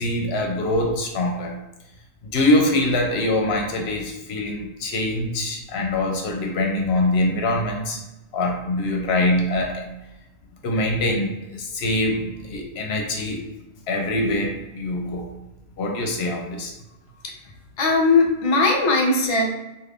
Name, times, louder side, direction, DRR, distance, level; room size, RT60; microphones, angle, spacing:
voice 1, 0.0-1.5 2.3-8.0 8.3-9.8 10.6-13.4 13.9-15.3 15.8-16.7, left 1 dB, 70° left, 1 dB, 0.8 m, -23 dB
voice 2, 17.8-19.5, left 3 dB, 40° left, -1 dB, 0.4 m, -19 dB
2.5 x 2.4 x 3.3 m, 1.0 s
omnidirectional pair, 1.1 m